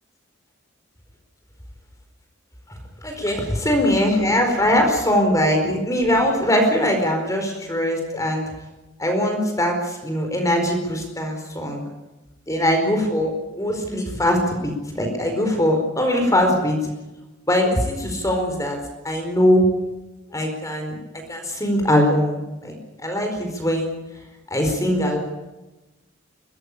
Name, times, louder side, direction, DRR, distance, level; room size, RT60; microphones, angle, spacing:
voice 1, 3.0-3.4 3.6-8.4 9.0-11.8 12.5-16.8 17.5-18.8 19.0-19.6 20.3-23.9 24.5-25.2, left 1 dB, 15° left, 4 dB, 4.6 m, -21 dB
22.5 x 19.0 x 8.6 m, 1.0 s
head